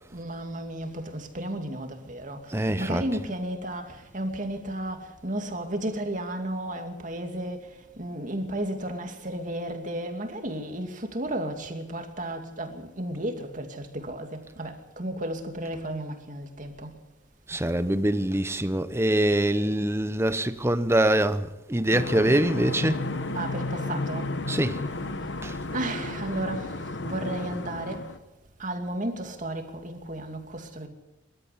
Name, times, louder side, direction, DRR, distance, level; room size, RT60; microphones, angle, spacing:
voice 1, 0.1-7.6 8.0-16.9 23.3-24.3 25.7-28.1 28.6-30.9, right 1 dB, 40° right, 2.5 m, -33 dB
voice 2, 2.5-3.1 17.5-23.0 24.5-24.8 25.4-25.6, right 1 dB, 15° right, 0.9 m, -24 dB
sound 1, 21.9-28.2, left 2 dB, 60° left, 1.2 m, -33 dB
24.0 x 13.0 x 8.5 m
head